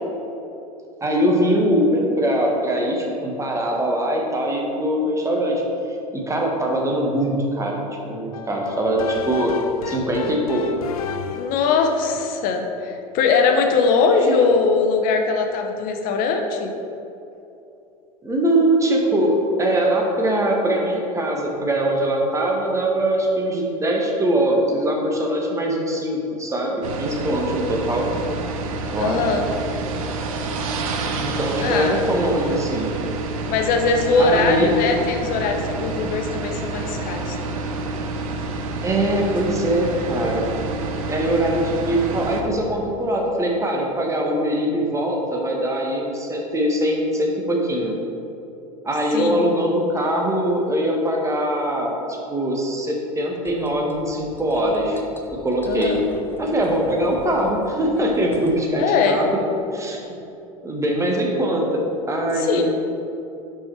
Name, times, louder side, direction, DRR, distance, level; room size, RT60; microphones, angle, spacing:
voice 1, 1.0-5.6 6.1-7.8 8.1-9.6 9.8-10.6 14.2-14.5 18.2-28.1 28.9-29.3 31.2-32.9 34.1-34.7 38.8-40.4 41.1-47.9 48.8-55.0 55.4-56.0 56.4-59.2 59.7-60.2 60.6-62.6, right 1 dB, 15° right, 0 dB, 1.3 m, -22 dB
sound 1, 8.3-11.7, left 5 dB, 80° left, 0.4 m, -31 dB
voice 2, 11.4-16.7 29.0-29.5 31.6-32.0 33.5-37.4 49.1-49.4 55.7-56.0 58.8-59.2 62.3-62.6, left 4 dB, 50° left, 4 dB, 0.9 m, -21 dB
sound 2, 26.8-42.4, right 3 dB, 70° right, 0.7 m, -28 dB
sound 3, 53.4-58.6, left 1 dB, 10° left, 0.7 m, -41 dB
5.4 x 5.1 x 4.4 m, 2.8 s
hypercardioid pair, 80°, 18 cm